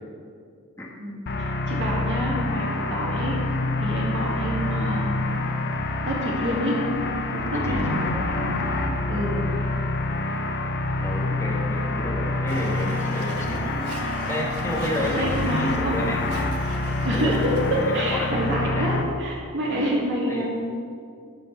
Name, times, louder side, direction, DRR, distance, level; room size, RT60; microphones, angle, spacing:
voice 1, 1.0-3.4 3.8-5.2 6.0-6.9 7.3-8.6 9.1-9.4 14.9-16.0 17.0-20.5, equal, 55° right, -3 dB, 2.4 m, -27 dB
sound 1, 1.3-19.0, left 2 dB, 50° left, 0.7 m, -27 dB
voice 2, 7.5-8.4 11.0-13.8 14.3-16.3 17.1-17.3 17.6-18.9 19.7-20.5, left 1 dB, 10° left, -3 dB, 1.3 m, -31 dB
Domestic sounds home sounds, 12.5-18.1, right 2 dB, 75° right, 1.1 m, -38 dB
11.5 x 4.3 x 6.9 m, 2.3 s
head